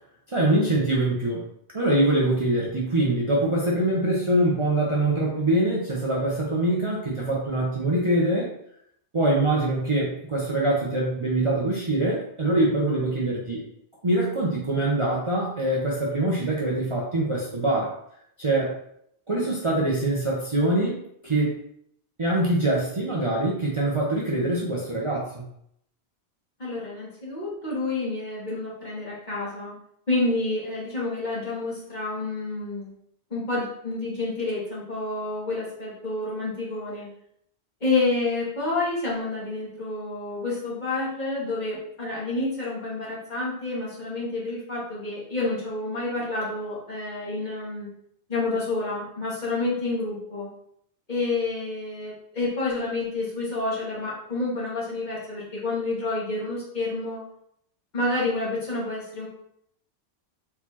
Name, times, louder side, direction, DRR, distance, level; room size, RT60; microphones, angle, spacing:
voice 1, 0.3-1.4 1.7-8.5 9.1-13.6 14.0-17.9 18.4-18.8 19.3-21.0 21.2-21.6 22.2-25.4, right 1 dB, 30° right, -5 dB, 0.8 m, -24 dB
voice 2, 26.6-29.8 30.1-32.9 33.3-37.1 37.8-47.9 48.3-50.5 51.1-57.2 57.9-59.3, left 2 dB, 40° left, -7 dB, 1.9 m, -29 dB
4.3 x 4.1 x 2.9 m, 0.71 s
omnidirectional pair, 1.2 m